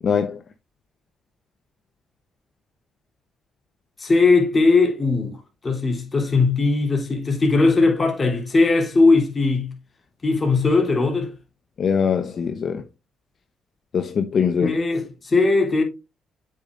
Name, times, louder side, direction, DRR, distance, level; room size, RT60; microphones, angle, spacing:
voice 1, 0.0-0.4 11.8-12.8 13.9-14.8, left 6 dB, 50° left, 0.8 m, -22 dB
voice 2, 4.0-5.4 5.6-9.7 10.2-11.3 14.6-15.8, left 3 dB, 30° left, 3.4 m, -19 dB
8.2 x 6.5 x 2.5 m
cardioid pair, 90°, 0 cm